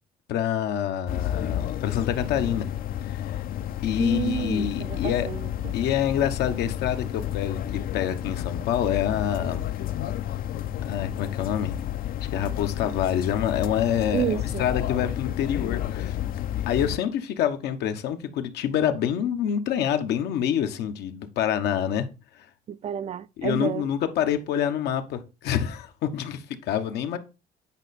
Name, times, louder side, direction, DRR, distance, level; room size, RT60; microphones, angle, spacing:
voice 1, 0.3-2.7 3.0-3.4 3.8-5.3 5.7-9.6 10.8-11.8 12.3-16.2 16.7-22.1 22.3-22.4 23.4-27.2, left 9 dB, 80° left, 1.1 m, -27 dB
sound 1, 1.1-17.0, left 12 dB, 60° left, 0.6 m, -31 dB
voice 2, 4.0-5.8 14.1-14.7 22.7-23.8, right 10 dB, 40° right, 0.4 m, -30 dB
8.9 x 5.3 x 4.2 m
cardioid pair, 110°, 17 cm